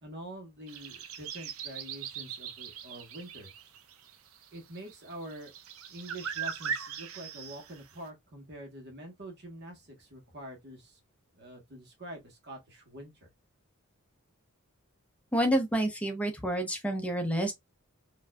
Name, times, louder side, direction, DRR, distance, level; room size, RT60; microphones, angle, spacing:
voice 1, 0.0-3.5 4.5-5.5 5.9-11.0 11.3-13.3, right 1 dB, 50° right, 1.2 m, -45 dB
sound 1, 0.7-8.0, right 7 dB, 70° right, 0.5 m, -40 dB
voice 2, 15.3-17.5, right 1 dB, 5° left, 0.6 m, -28 dB
4.3 x 2.6 x 2.3 m
head